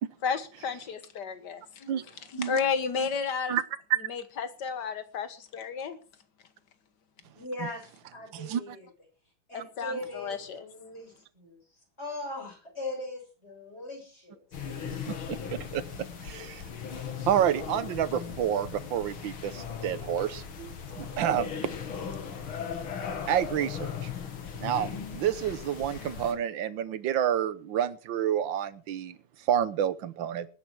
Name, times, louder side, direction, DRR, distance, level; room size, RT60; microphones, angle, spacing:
voice 1, 0.2-1.9 2.3-3.6 4.1-6.0 9.5-10.6, left 6 dB, 60° left, 1.9 m, -32 dB
voice 2, 7.3-7.8 8.1-8.9 9.5-11.6 12.0-14.4, left 1 dB, 30° left, 7.2 m, -39 dB
voice 3, 8.3-8.8 15.1-15.8 16.2-16.6 17.2-21.5 23.3-24.1 24.6-29.1 29.5-30.5, right 10 dB, 70° right, 1.7 m, -29 dB
sound 1, 14.5-26.3, left 7 dB, 85° left, 2.8 m, -38 dB
20.0 x 10.0 x 4.6 m
omnidirectional pair, 2.2 m